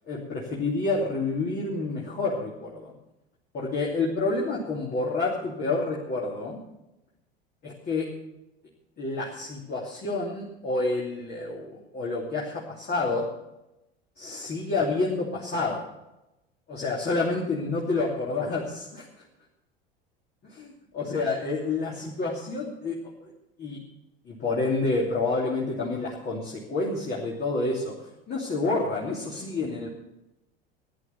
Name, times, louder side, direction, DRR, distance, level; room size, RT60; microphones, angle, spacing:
voice 1, 0.1-2.9 3.5-6.6 7.6-8.1 9.0-13.3 14.2-15.9 16.7-19.1 20.5-23.3 23.6-23.8 24.2-29.9, left 3 dB, 35° left, -3 dB, 2.9 m, -29 dB
14.0 x 10.0 x 7.0 m, 0.92 s
figure-of-eight pair, 75°, 29 cm